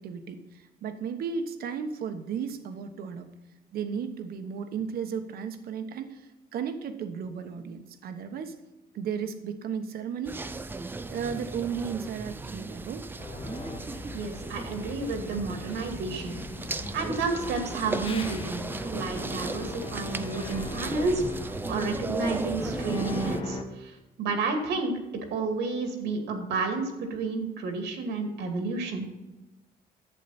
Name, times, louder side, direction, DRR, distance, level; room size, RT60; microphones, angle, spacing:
voice 1, 0.0-3.3 3.7-8.6 8.9-10.4 11.1-13.1, right 6 dB, 65° right, 8 dB, 1.2 m, -34 dB
sound 1, 10.2-23.4, right 3 dB, 10° right, 0.4 m, -36 dB
sound 2, 13.2-23.6, left 4 dB, 30° left, 1.1 m, -40 dB
voice 2, 14.1-16.4 16.9-18.6 18.9-24.9 25.3-29.1, right 3 dB, 85° right, 4 dB, 2.4 m, -31 dB
11.0 x 8.4 x 4.3 m, 1.1 s
cardioid pair, 165°, 17 cm